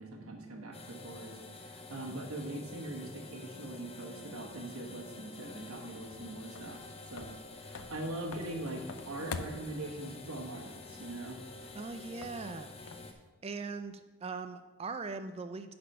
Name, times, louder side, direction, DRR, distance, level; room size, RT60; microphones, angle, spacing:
voice 1, 0.0-6.8 7.1-11.4, right 1 dB, 75° right, 1 dB, 1.3 m, -42 dB
sound 1, 0.7-13.1, left 3 dB, 25° left, 0.6 m, -49 dB
sound 2, 5.6-13.3, left 5 dB, 65° left, 0.5 m, -48 dB
voice 2, 11.7-13.2 13.4-15.7, right 4 dB, 25° right, 10 dB, 0.3 m, -41 dB
9.9 x 4.3 x 5.4 m, 1.2 s
head